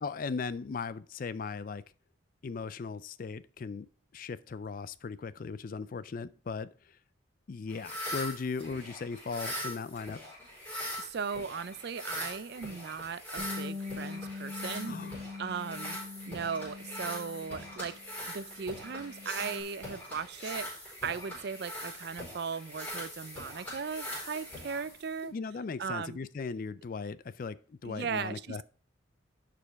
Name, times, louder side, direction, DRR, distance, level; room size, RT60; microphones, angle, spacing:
voice 1, 0.0-1.8 2.4-3.9 4.1-7.0 7.5-10.2 14.8-15.2 25.2-28.6, left 4 dB, 45° left, 0.4 m, -38 dB
sound 1, 7.7-25.3, left 1 dB, 10° left, 4.4 m, -42 dB
voice 2, 11.0-15.0 15.4-16.0 16.3-17.9 18.3-20.7 21.0-25.3 25.8-26.2 27.8-28.6, right 6 dB, 55° right, 0.4 m, -37 dB
Bass guitar, 13.4-18.1 18.4-19.6, left 3 dB, 30° right, 2.5 m, -43 dB
11.0 x 5.1 x 3.5 m
head